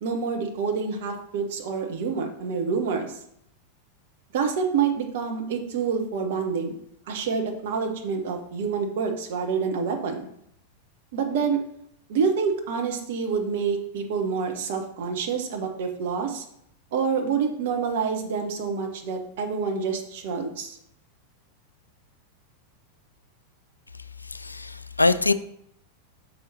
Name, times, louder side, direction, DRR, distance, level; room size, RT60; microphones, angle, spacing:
voice 1, 0.0-3.1 4.3-6.7 7.1-10.3 11.1-11.6 12.1-16.4 16.9-20.8, right 5 dB, 55° right, 4 dB, 1.1 m, -27 dB
voice 2, 24.2-25.3, left 3 dB, 80° left, 14 dB, 0.3 m, -23 dB
6.1 x 5.5 x 4.1 m, 0.73 s
figure-of-eight pair, 90°, 0 cm